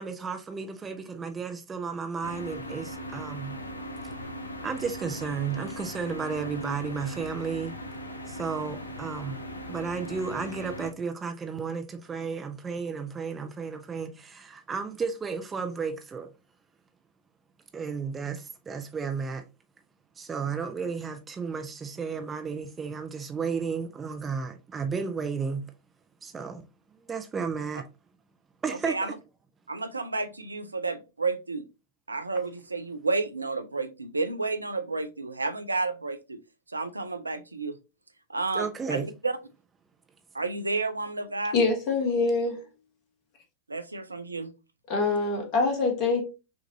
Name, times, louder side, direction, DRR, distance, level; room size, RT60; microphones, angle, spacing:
voice 1, 0.0-3.6 4.0-4.1 4.6-7.7 8.3-9.4 9.7-16.3 17.7-19.4 20.2-25.7 26.2-26.7 27.0-27.9 28.6-29.2 38.5-39.1, right 5 dB, 20° right, 0.6 m, -33 dB
sound 1, 2.2-10.9, equal, 80° left, 0.5 m, -39 dB
voice 2, 29.7-31.7 32.1-36.4 36.7-37.8 38.3-39.4 40.3-41.5 43.7-44.5, right 3 dB, 80° right, 0.4 m, -31 dB
voice 3, 41.5-42.6 44.9-46.2, left 3 dB, 40° left, 1.4 m, -25 dB
6.0 x 2.5 x 2.6 m
figure-of-eight pair, 90°, 0 cm